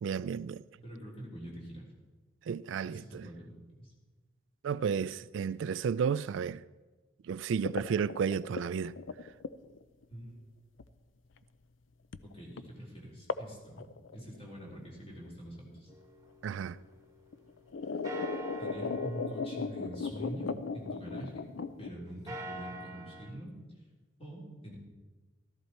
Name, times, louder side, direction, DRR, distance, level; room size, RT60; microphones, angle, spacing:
voice 1, 0.0-0.6 2.5-3.3 4.6-6.6 7.2-9.0 16.4-16.8, right 6 dB, 75° right, 0.3 m, -32 dB
voice 2, 0.8-1.9 2.8-3.9 10.1-10.3 12.3-13.9 14.1-15.9 18.6-21.4 21.8-23.5 24.2-24.8, right 1 dB, 30° left, 3.7 m, -45 dB
sound 1, 7.6-10.0 10.8-10.9 12.1-12.3 12.6-12.7 13.3-13.5 13.8-14.6 15.8-15.9 16.8-16.9 17.3-21.9, left 4 dB, 80° left, 0.5 m, -37 dB
sound 2, 15.9-17.6 18.0-21.6 22.1-23.3, right 1 dB, 15° right, 1.4 m, -47 dB
14.0 x 13.5 x 4.4 m
head